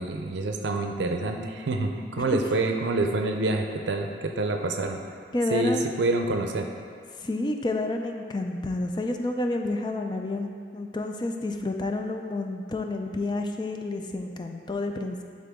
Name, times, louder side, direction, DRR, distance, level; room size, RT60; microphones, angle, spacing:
voice 1, 0.0-5.0 5.5-6.7, right 2 dB, 80° right, 4 dB, 0.5 m, -27 dB
voice 2, 5.3-5.9 7.1-15.2, left 2 dB, 25° left, 4 dB, 0.4 m, -29 dB
11.5 x 3.8 x 3.6 m, 2.1 s
head